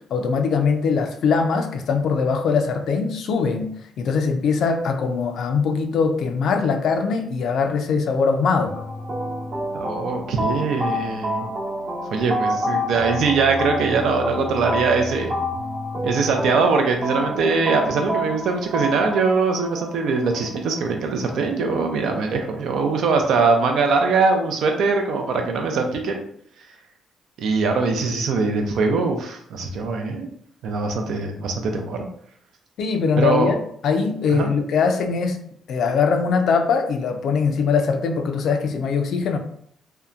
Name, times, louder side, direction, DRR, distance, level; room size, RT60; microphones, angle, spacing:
voice 1, 0.1-3.7 4.0-8.7 32.8-33.6 33.8-35.4 35.7-39.4, left 5 dB, 70° left, 6 dB, 0.4 m, -21 dB
sound 1, 8.7-21.6, equal, 50° right, 0.9 m, -28 dB
voice 2, 9.7-11.5 12.1-15.4 16.0-26.2 27.4-30.3 30.6-32.1 33.2-33.5 34.3-34.5, right 4 dB, 75° right, 4 dB, 0.5 m, -22 dB
2.7 x 2.2 x 2.4 m, 0.65 s
cardioid pair, 90°, 0 cm